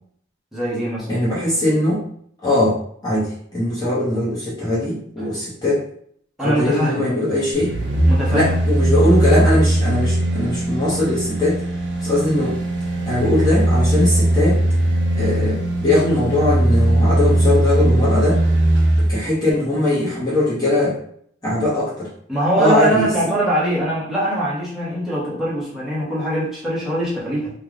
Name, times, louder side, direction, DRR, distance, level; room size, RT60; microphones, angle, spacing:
voice 1, 0.5-1.2 6.4-7.0 8.0-8.5 22.3-27.5, equal, ahead, -8 dB, 1.0 m, -22 dB
voice 2, 1.1-2.0 2.4-5.8 6.4-7.8 8.3-11.6 12.0-12.6 13.1-14.6 15.2-18.4 19.0-21.0 21.4-22.1 22.6-23.1, left 1 dB, 20° left, -8 dB, 0.9 m, -20 dB
sound 1, 7.5-19.1 19.5-19.6, right 1 dB, 70° right, 0.9 m, -19 dB
3.1 x 2.3 x 3.7 m, 0.63 s
head